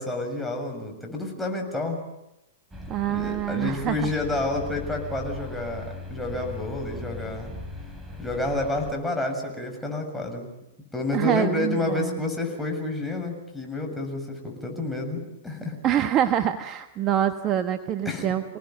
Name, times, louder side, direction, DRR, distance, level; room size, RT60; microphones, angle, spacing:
voice 1, 0.0-2.0 3.1-7.5 8.2-10.5 10.9-15.8 18.0-18.3, left 2 dB, 5° left, 0 dB, 7.2 m, -29 dB
sound 1, 2.7-8.9, left 2 dB, 10° right, 4.9 m, -39 dB
voice 2, 2.9-4.1 11.1-12.1 15.8-18.4, right 10 dB, 35° right, 8 dB, 1.3 m, -25 dB
28.0 x 19.0 x 9.2 m, 0.88 s
hypercardioid pair, 110°, 0 cm